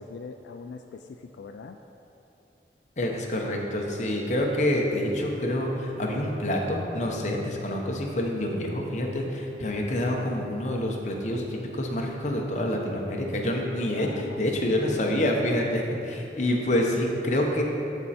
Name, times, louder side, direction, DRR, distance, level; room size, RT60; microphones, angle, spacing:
voice 1, 0.0-1.8 13.9-14.4 16.5-17.2, left 4 dB, 75° left, 5 dB, 0.3 m, -42 dB
voice 2, 3.0-17.6, left 1 dB, 40° left, 0 dB, 0.9 m, -27 dB
12.5 x 4.4 x 4.3 m, 2.9 s
head